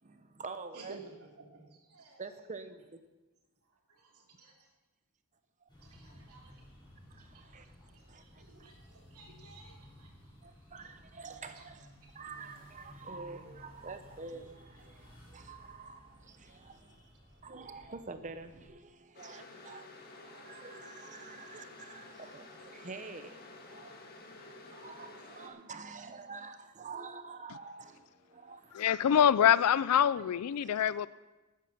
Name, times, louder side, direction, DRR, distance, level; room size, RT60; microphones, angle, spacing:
voice 1, 0.0-1.0 2.2-3.0 5.6-5.7 7.1-7.7 8.1-8.7 10.4-16.9 17.4-23.4 23.7-28.9 30.6-30.8, right 4 dB, 35° right, 9 dB, 0.9 m, -47 dB
voice 2, 0.7-1.1 1.4-1.6 1.9-2.3 3.9-4.5 5.8-6.6 7.3-7.5 7.9-10.1 11.5-11.6 16.9-17.0 21.1-21.2, right 3 dB, 75° right, -1 dB, 3.0 m, -54 dB
sound 1, 5.7-18.7, equal, 20° left, 5.5 m, -57 dB
sound 2, 19.1-25.5, left 2 dB, 45° left, 1.8 m, -51 dB
voice 3, 28.7-31.1, left 9 dB, 85° left, 18 dB, 0.4 m, -25 dB
13.0 x 9.5 x 5.9 m, 1.1 s
head